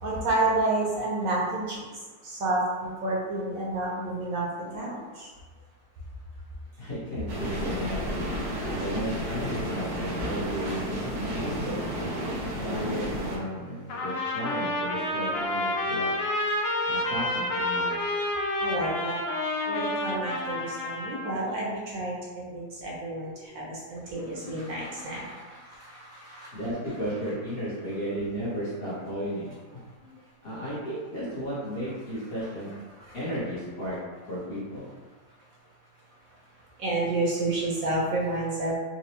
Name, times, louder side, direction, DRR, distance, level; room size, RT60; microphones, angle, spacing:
voice 1, 0.0-1.9 2.2-4.5 4.7-5.3 10.7-11.0 16.2-16.3 18.6-19.2 19.7-26.6 33.0-33.2 36.8-38.7, right 2 dB, 65° right, -4 dB, 1.0 m, -30 dB
voice 2, 6.8-8.0 8.6-12.1 12.6-16.1 16.9-18.1 26.5-29.5 30.4-32.7 33.1-34.0 34.3-34.9, equal, 45° left, -9 dB, 1.0 m, -34 dB
sound 1, 7.3-13.4, equal, 90° right, 1.4 m, -32 dB
Trumpet, 13.9-21.4, left 1 dB, 80° left, 0.5 m, -29 dB
3.9 x 2.3 x 2.8 m, 1.4 s
omnidirectional pair, 1.7 m